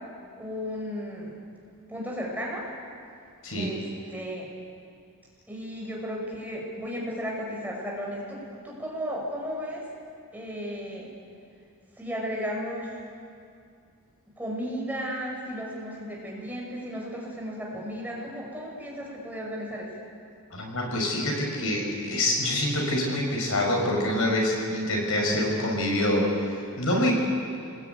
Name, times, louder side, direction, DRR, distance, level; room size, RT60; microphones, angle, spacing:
voice 1, 0.4-1.4 1.9-2.7 3.6-3.8 4.1-4.5 5.5-9.8 10.3-11.1 12.0-12.9 14.4-20.0, equal, 5° right, -3 dB, 5.6 m, -34 dB
voice 2, 3.4-3.8 20.5-27.1, left 1 dB, 65° left, 0 dB, 6.0 m, -26 dB
27.5 x 20.5 x 9.4 m, 2.4 s
head